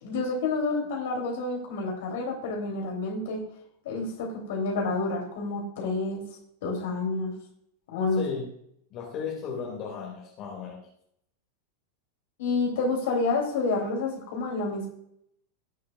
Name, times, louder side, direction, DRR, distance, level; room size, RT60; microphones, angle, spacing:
voice 1, 0.0-3.4 3.8-6.2 6.6-7.3 7.9-8.2 12.4-14.9, left 3 dB, 55° left, 0 dB, 3.4 m, -29 dB
voice 2, 8.9-10.9, left 6 dB, 35° left, -2 dB, 2.5 m, -35 dB
18.5 x 6.5 x 2.5 m, 0.72 s
figure-of-eight pair, 90°, 0 cm